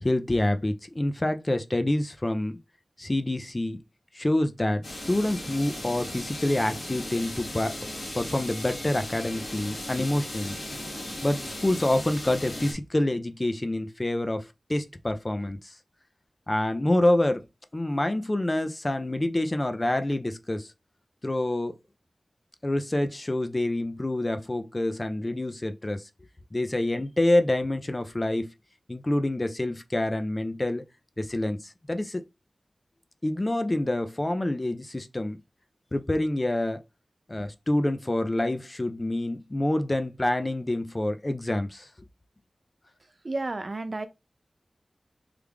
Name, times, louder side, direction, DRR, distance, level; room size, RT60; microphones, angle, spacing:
voice 1, 0.0-2.6 3.0-3.8 4.1-7.8 8.1-10.6 11.2-15.7 16.5-17.4 17.7-20.7 21.2-21.8 22.6-26.0 26.5-28.5 28.9-30.9 31.2-32.2 33.2-35.4 35.9-36.8 37.3-41.9, left 1 dB, 30° left, 0.4 m, -27 dB
sound 1, 4.8-12.7, left 1 dB, 65° left, 1.7 m, -37 dB
voice 2, 43.2-44.1, right 2 dB, 45° right, 0.4 m, -31 dB
3.2 x 2.4 x 3.3 m
wide cardioid pair, 75°, 0 cm